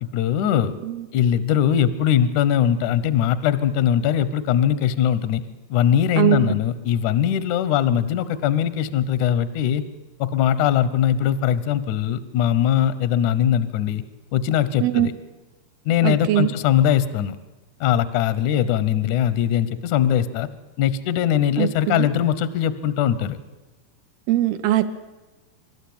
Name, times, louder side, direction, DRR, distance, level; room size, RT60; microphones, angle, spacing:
voice 1, 0.0-0.7 1.1-5.4 5.7-9.8 10.2-14.0 14.3-15.1 15.9-17.4 17.8-20.5 20.8-23.4, left 10 dB, 75° left, 14 dB, 1.8 m, -21 dB
voice 2, 6.2-6.5 14.8-15.1 16.0-16.5 21.6-22.1 24.3-24.9, right 13 dB, 75° right, 9 dB, 2.7 m, -21 dB
25.5 x 12.5 x 8.6 m, 1.1 s
omnidirectional pair, 4.6 m